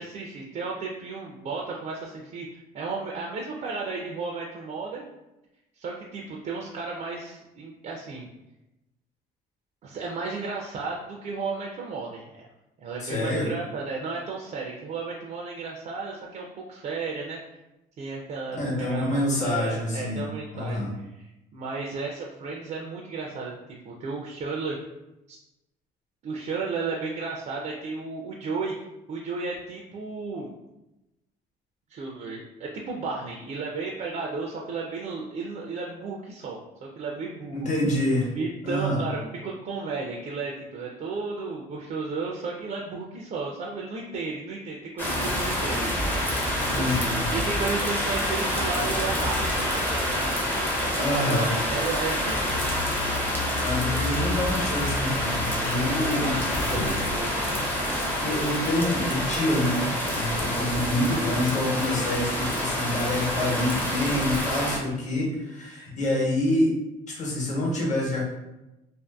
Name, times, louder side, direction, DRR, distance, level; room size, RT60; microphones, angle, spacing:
voice 1, 0.0-5.1 5.8-8.3 9.8-12.5 12.8-17.4 18.0-23.5 23.8-24.8 25.3-25.4 26.2-28.7 29.1-30.5 31.9-37.7 38.3-45.9 46.8-52.5 53.6-53.8 56.0-57.5, right 4 dB, 45° right, -1 dB, 0.4 m, -34 dB
voice 2, 13.0-13.5 18.6-20.2 20.5-20.9 37.5-38.3 38.6-39.0 46.6-47.2 51.0-51.5 53.6-56.4 56.7-56.8 58.2-66.7 67.1-68.3, left 1 dB, 45° left, -3 dB, 1.0 m, -27 dB
sound 1, 45.0-64.8, equal, 10° left, 0.5 m, -27 dB
sound 2, 52.1-58.7, left 4 dB, 90° left, 0.4 m, -36 dB
sound 3, 53.8-60.6, equal, 75° left, 0.9 m, -39 dB
2.5 x 2.5 x 2.3 m, 0.95 s
cardioid pair, 110°, 17 cm